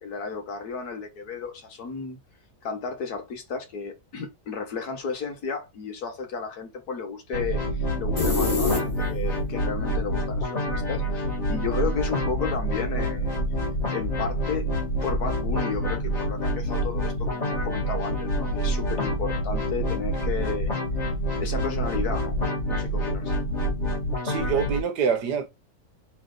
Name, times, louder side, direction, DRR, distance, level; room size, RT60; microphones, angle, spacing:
voice 1, 0.0-2.2 2.6-13.4 13.9-14.7 15.0-20.7 21.4-22.3 22.7-23.3, left 5 dB, 65° left, 1.8 m, -33 dB
sound 1, 7.3-24.8, equal, 45° left, 1.7 m, -27 dB
sound 2, 8.2-9.4, left 4 dB, 25° left, 2.4 m, -25 dB
voice 2, 24.2-25.5, right 6 dB, 75° right, 1.6 m, -25 dB
3.9 x 3.3 x 3.9 m
omnidirectional pair, 1.8 m